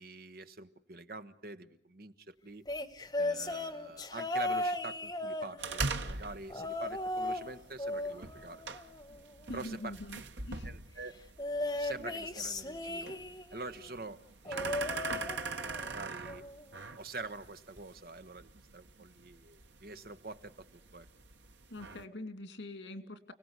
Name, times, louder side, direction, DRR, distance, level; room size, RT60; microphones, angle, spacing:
voice 1, 0.0-2.6 3.2-8.6 9.5-9.9 10.6-11.2 11.8-13.1 13.5-15.3 15.6-16.4 17.0-20.5 20.9-21.1, right 3 dB, 55° right, 10 dB, 1.2 m, -46 dB
sound 1, 2.7-6.0 6.5-7.5 7.8-9.3 11.4-13.6 14.5-15.9 16.3-16.6 17.8-17.9, left 1 dB, 20° left, 1.3 m, -36 dB
sound 2, 5.6-22.0, right 4 dB, 85° right, 1.5 m, -43 dB
voice 2, 9.5-10.7 21.7-23.3, left 1 dB, 90° left, 9 dB, 2.6 m, -44 dB
29.5 x 18.0 x 8.2 m, 0.81 s
head